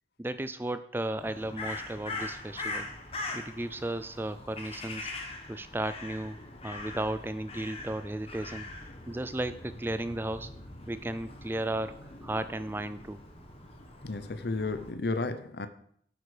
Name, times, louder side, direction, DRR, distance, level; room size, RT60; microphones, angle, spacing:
voice 1, 0.2-2.9 3.3-5.1 5.5-6.4 6.6-8.7 9.1-10.5 10.9-13.2, right 1 dB, 10° right, 0.4 m, -34 dB
Crow, 1.2-14.9, left 2 dB, 35° left, 1.6 m, -42 dB
voice 2, 14.0-15.7, left 3 dB, 65° left, 0.7 m, -32 dB
9.6 x 8.2 x 4.9 m
head